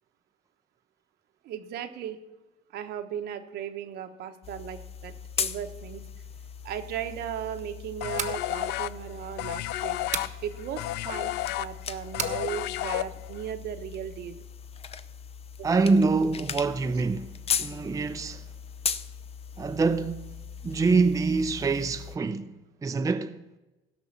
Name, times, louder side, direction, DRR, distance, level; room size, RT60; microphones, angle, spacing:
voice 1, 1.4-2.2 2.7-6.0 6.6-10.0 10.4-14.4 15.6-15.8, right 9 dB, 75° right, 1.1 m, -37 dB
sound 1, 4.4-22.2, left 7 dB, 35° left, 0.7 m, -38 dB
sound 2, 8.0-13.5, left 15 dB, 80° left, 0.4 m, -32 dB
sound 3, 8.1-8.4 10.1-10.4 12.2-12.4, right 7 dB, 45° right, 1.1 m, -32 dB
voice 2, 15.6-17.3 17.6-18.4 19.6-20.3 20.6-22.5 22.8-23.4, right 4 dB, 20° right, 0.6 m, -25 dB
16.0 x 5.7 x 7.3 m
cardioid pair, 110°, 17 cm